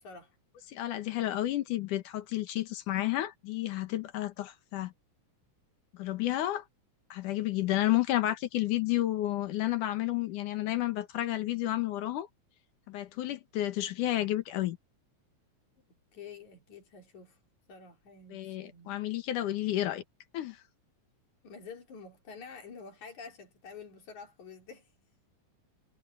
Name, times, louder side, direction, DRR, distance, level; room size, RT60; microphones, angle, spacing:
voice 1, 0.7-4.9 5.9-6.6 7.1-12.3 12.9-14.8 18.3-20.0 20.3-20.6, left 14 dB, 90° left, 2.8 m, -31 dB
voice 2, 16.1-17.4 17.7-18.9 21.4-24.9, left 5 dB, 70° left, 4.9 m, -48 dB
omnidirectional pair, 3.6 m